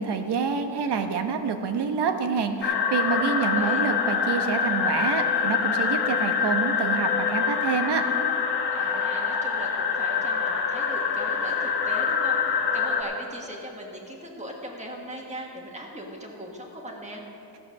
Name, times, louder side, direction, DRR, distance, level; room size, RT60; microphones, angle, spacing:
voice 1, 0.0-8.0, right 5 dB, 70° right, 6 dB, 1.1 m, -27 dB
sound 1, 2.6-13.0, left 6 dB, 65° left, 1.2 m, -25 dB
voice 2, 3.3-3.8 8.7-17.2, equal, 15° right, -1 dB, 1.6 m, -39 dB
15.0 x 7.6 x 6.4 m, 2.9 s
wide cardioid pair, 160°, 42 cm